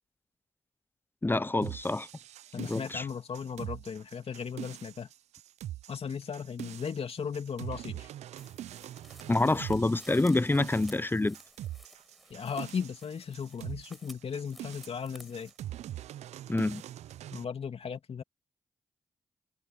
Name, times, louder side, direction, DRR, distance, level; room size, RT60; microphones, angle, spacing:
voice 1, 1.2-2.1 2.6-3.0 9.3-11.4 16.5-16.8, left 2 dB, 20° left, 0.8 m, -27 dB
sound 1, 1.6-17.4, right 12 dB, 75° right, 0.5 m, -43 dB
voice 2, 2.5-5.1 5.9-8.1 12.3-15.5 17.3-18.2, left 6 dB, 60° left, 2.6 m, -37 dB
sound 2, 8.4-15.6, equal, ahead, 6.5 m, -55 dB
hypercardioid pair, 40°, 11 cm